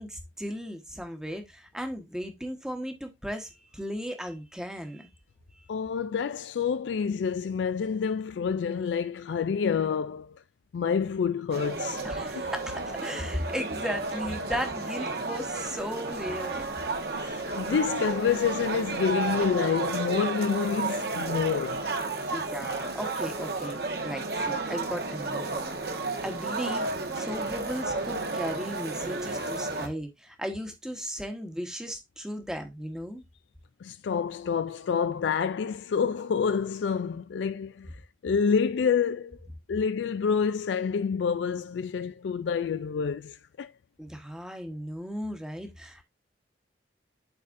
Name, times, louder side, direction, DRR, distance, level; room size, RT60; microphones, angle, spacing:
voice 1, 0.0-5.1 5.5-5.7 12.0-16.7 22.3-33.2 44.0-46.0, equal, 5° right, 1.1 m, -36 dB
voice 2, 5.7-10.4 10.7-12.1 17.1-21.9 33.8-38.0 38.2-39.4 39.7-43.7, left 6 dB, 80° left, 0.3 m, -28 dB
sound 1, 11.5-29.9, right 3 dB, 60° right, 1.2 m, -32 dB
12.0 x 4.1 x 2.5 m
head